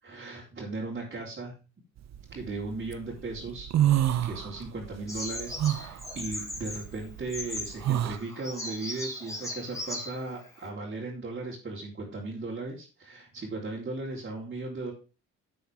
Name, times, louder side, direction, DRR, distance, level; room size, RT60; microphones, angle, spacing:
voice 1, 0.0-1.5 2.3-14.9, right 3 dB, 35° right, -4 dB, 3.7 m, -37 dB
sound 1, 2.1-2.9 3.3-4.9 5.2-8.2, right 12 dB, 60° right, 0.9 m, -27 dB
Bird vocalization bird call bird song, 5.1-10.7, left 1 dB, 10° left, 4.5 m, -39 dB
11.5 x 7.9 x 3.5 m, 0.33 s
cardioid pair, 90°, 30 cm